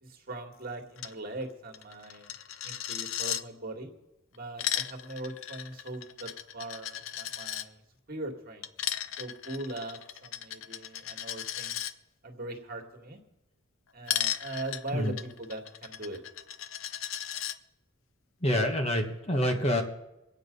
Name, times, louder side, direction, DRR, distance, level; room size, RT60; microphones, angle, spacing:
voice 1, 0.0-2.3 2.6-3.9 4.3-7.8 8.1-8.7 9.2-11.8 12.2-13.2 13.9-16.2, right 2 dB, 45° right, 2 dB, 2.0 m, -40 dB
Coin (dropping), 1.0-1.1 1.4-1.5 1.7-3.4 4.3-7.7 8.6-11.9 14.1-17.6, left 11 dB, 70° left, 0.6 m, -36 dB
voice 2, 18.4-19.8, left 1 dB, 30° left, 4 dB, 1.4 m, -27 dB
23.5 x 9.0 x 5.3 m, 0.93 s
head